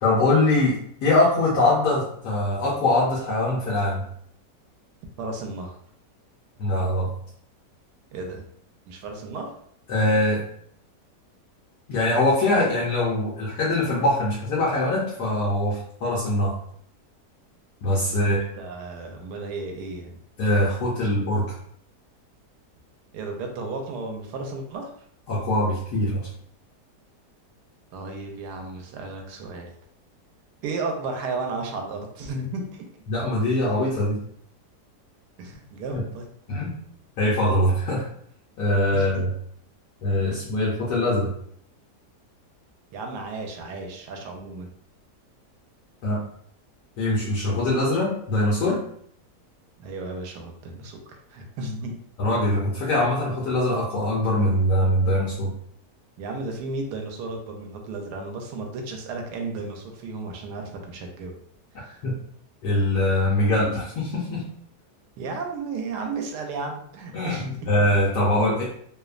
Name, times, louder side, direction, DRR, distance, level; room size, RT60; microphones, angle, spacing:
voice 1, 0.0-0.7 1.0-4.0 6.6-7.1 9.9-10.4 11.9-16.5 17.8-18.4 20.4-21.5 25.3-26.3 33.1-34.2 35.9-36.0 36.5-36.7 37.2-38.0 38.6-39.3 40.0-41.3 46.0-46.2 47.0-48.8 52.2-55.5 62.0-62.1 62.6-64.4 67.1-67.4 67.7-68.6, left 1 dB, 75° left, -6 dB, 1.2 m, -22 dB
voice 2, 5.2-5.8 8.1-8.5 8.9-9.5 18.0-20.2 21.0-21.2 23.1-24.9 27.9-29.7 30.6-32.8 35.4-36.3 38.9-39.2 42.9-44.7 49.8-51.0 51.3-51.9 56.2-61.4 61.8-62.0 63.3-63.5 65.2-67.7, right 3 dB, 80° right, 2 dB, 1.2 m, -34 dB
3.0 x 2.0 x 2.4 m, 0.66 s
omnidirectional pair, 1.8 m